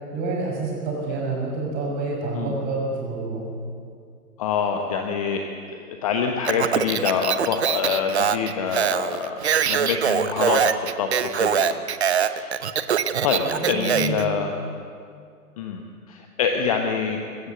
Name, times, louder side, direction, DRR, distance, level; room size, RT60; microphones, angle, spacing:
voice 1, 0.1-3.4 13.4-14.3, right 3 dB, 20° right, -2 dB, 5.9 m, -28 dB
voice 2, 4.4-12.6 13.2-14.6 15.6-17.2, left 6 dB, 20° left, 4 dB, 1.0 m, -26 dB
Speech, 6.4-14.2, right 8 dB, 45° right, 0.9 m, -23 dB
23.5 x 14.5 x 7.9 m, 2.3 s
figure-of-eight pair, 135°, 47 cm